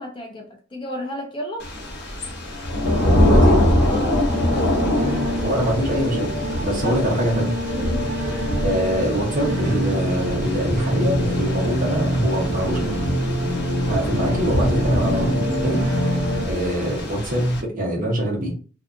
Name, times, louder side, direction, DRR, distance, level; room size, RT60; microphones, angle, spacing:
voice 1, 0.0-1.7 3.9-4.2 6.8-7.0 7.7-8.1, equal, 25° left, 0.5 m, -32 dB
Thunder / Rain, 1.6-17.6, left 1 dB, 55° left, 0.8 m, -24 dB
voice 2, 3.2-3.6 5.4-6.3 6.6-7.5 8.6-12.9 13.9-15.8 16.4-18.5, equal, 45° right, 1.0 m, -24 dB
sound 1, 4.3-16.5, equal, 60° right, 0.7 m, -25 dB
2.6 x 2.3 x 2.6 m
head